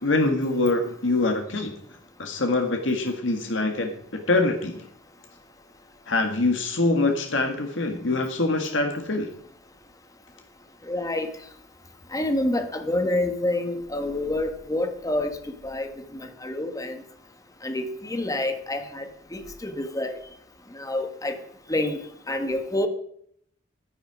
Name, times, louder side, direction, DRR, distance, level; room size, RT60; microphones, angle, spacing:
voice 1, 0.0-1.7 2.2-3.9 4.3-4.9 6.1-9.3, left 2 dB, 75° left, 4 dB, 1.8 m, -24 dB
voice 2, 10.9-11.3 12.1-15.4 15.6-17.0 17.6-20.1 20.8-21.3 21.7-22.0 22.3-22.9, left 1 dB, 20° left, 7 dB, 1.4 m, -27 dB
11.0 x 10.5 x 5.0 m, 0.66 s
head